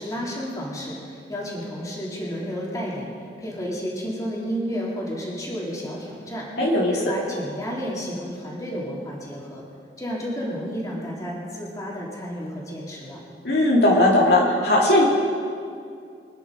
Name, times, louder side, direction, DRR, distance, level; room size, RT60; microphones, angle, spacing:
voice 1, 0.0-3.1 3.4-6.5 6.9-9.6 10.0-13.2, equal, 20° left, -5 dB, 3.4 m, -31 dB
voice 2, 6.6-7.0 13.4-15.0, left 1 dB, 65° left, -3 dB, 2.6 m, -18 dB
25.0 x 10.5 x 5.0 m, 2.3 s
head